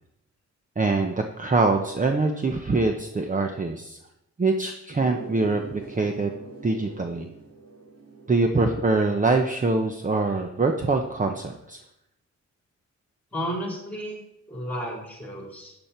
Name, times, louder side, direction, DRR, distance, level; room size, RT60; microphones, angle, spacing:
voice 1, 0.8-4.0 4.4-5.6 5.9-6.3 6.6-7.3 8.3-11.8, right 3 dB, 25° right, 4 dB, 0.9 m, -24 dB
sound 1, 4.9-10.2, right 4 dB, 55° right, 2.0 m, -43 dB
voice 2, 13.3-14.2 14.5-15.8, equal, 5° left, -1 dB, 4.3 m, -32 dB
12.5 x 9.0 x 4.5 m, 0.83 s
wide cardioid pair, 105°, 29 cm